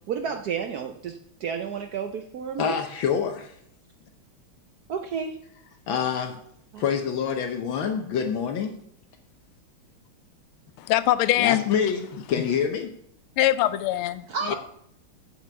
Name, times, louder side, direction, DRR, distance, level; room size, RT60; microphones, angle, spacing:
voice 1, 0.1-2.8 4.9-5.4 6.7-6.8 14.3-14.5, right 6 dB, 70° right, 0.9 m, -31 dB
voice 2, 2.6-3.5 5.9-6.4 6.8-8.7 11.4-12.9 14.5-14.6, left 7 dB, 75° left, 1.6 m, -26 dB
voice 3, 10.8-11.6 13.4-14.5, left 13 dB, 90° left, 1.4 m, -23 dB
6.8 x 6.1 x 7.5 m
omnidirectional pair, 2.3 m